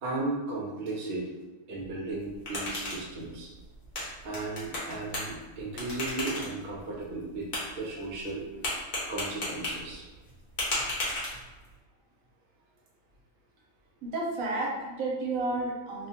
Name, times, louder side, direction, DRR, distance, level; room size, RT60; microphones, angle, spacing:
voice 1, 0.0-1.2 1.7-3.5 4.2-7.5 7.7-8.8 9.1-10.0, right 2 dB, 55° right, -3 dB, 0.7 m, -35 dB
sound 1, 2.1-11.8, left 1 dB, 85° left, 1.4 m, -37 dB
voice 2, 14.0-16.1, right 2 dB, 75° right, -2 dB, 1.0 m, -31 dB
2.9 x 2.1 x 2.7 m, 1.2 s
omnidirectional pair, 1.6 m